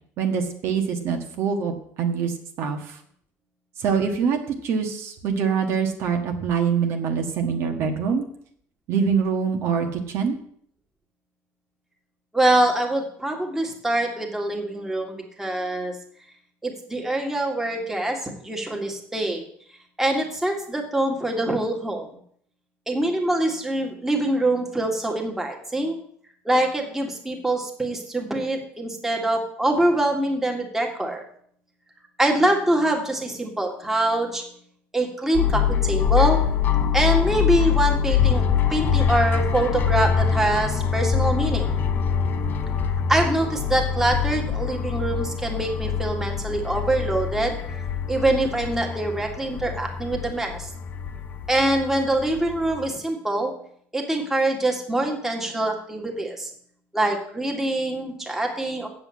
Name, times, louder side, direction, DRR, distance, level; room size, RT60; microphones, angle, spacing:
voice 1, 0.2-2.3 2.6-3.0 3.8-8.2 8.9-10.4, right 6 dB, 55° right, 4 dB, 1.5 m, -24 dB
voice 2, 12.3-16.0 16.6-19.5 20.0-22.1 22.9-26.0 26.5-31.2 32.2-34.4 34.9-36.4 36.9-41.7 43.1-47.6 48.1-50.7 51.5-53.5 53.9-56.5 56.9-58.9, right 1 dB, 5° right, 1 dB, 1.9 m, -24 dB
sound 1, 35.3-52.9, left 8 dB, 40° left, 1.0 m, -24 dB
7.7 x 7.0 x 8.4 m, 0.63 s
cardioid pair, 140°, 5 cm